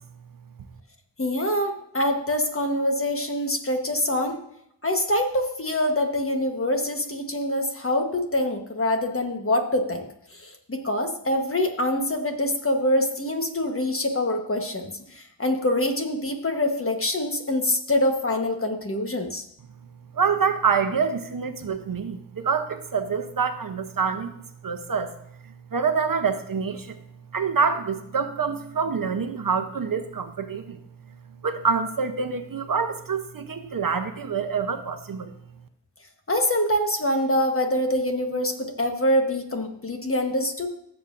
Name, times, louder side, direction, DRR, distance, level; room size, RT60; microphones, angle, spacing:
voice 1, 1.2-4.4 4.8-19.4 36.3-40.7, left 1 dB, 30° left, 4 dB, 1.3 m, -25 dB
voice 2, 20.1-24.3 24.6-25.1 25.4-27.0 27.3-30.8 31.4-35.3, right 5 dB, 55° right, 8 dB, 0.9 m, -26 dB
16.0 x 7.2 x 2.6 m, 0.74 s
wide cardioid pair, 100°, 41 cm